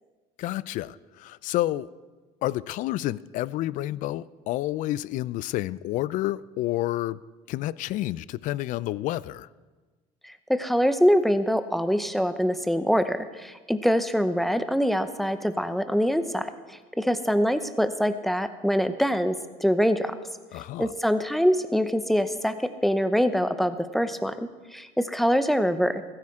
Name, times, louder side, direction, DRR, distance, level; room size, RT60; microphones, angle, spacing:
voice 1, 0.4-1.9 2.4-7.2 7.5-9.5 20.5-20.9, left 15 dB, 55° left, 20 dB, 0.4 m, -29 dB
voice 2, 10.2-16.5 17.0-19.3 19.6-20.1 20.8-22.6 22.8-26.0, equal, ahead, 10 dB, 0.8 m, -24 dB
16.0 x 14.0 x 3.7 m, 1.3 s
supercardioid pair, 110°, 15 cm